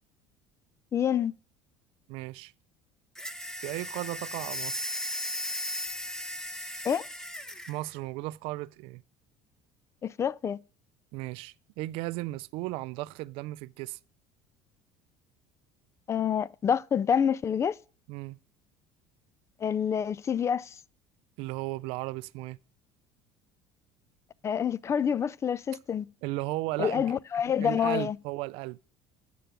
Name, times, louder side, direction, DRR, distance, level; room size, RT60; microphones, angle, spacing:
voice 1, 0.9-1.3 6.8-7.1 10.0-10.6 16.1-17.8 19.6-20.8 24.4-26.1 26.8-28.2, left 8 dB, 30° left, 0.4 m, -27 dB
voice 2, 2.1-2.5 3.6-5.0 7.7-9.0 11.1-14.0 18.1-18.4 21.4-22.6 26.2-27.2 27.6-28.9, right 19 dB, 70° right, 0.4 m, -35 dB
sound 1, 3.1-7.8, equal, 5° left, 0.9 m, -36 dB
9.2 x 6.7 x 5.0 m
supercardioid pair, 105°, 10 cm